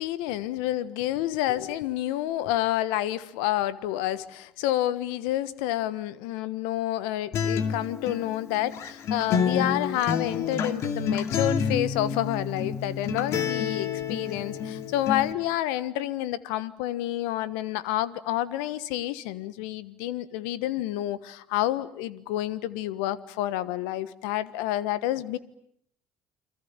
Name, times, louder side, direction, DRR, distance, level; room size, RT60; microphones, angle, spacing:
voice 1, 0.0-25.4, left 14 dB, 80° left, 16 dB, 1.3 m, -29 dB
Acoustic guitar, 7.3-15.3, left 6 dB, 60° left, 2.4 m, -29 dB
29.5 x 22.5 x 8.9 m, 0.71 s
hypercardioid pair, 65°, 5 cm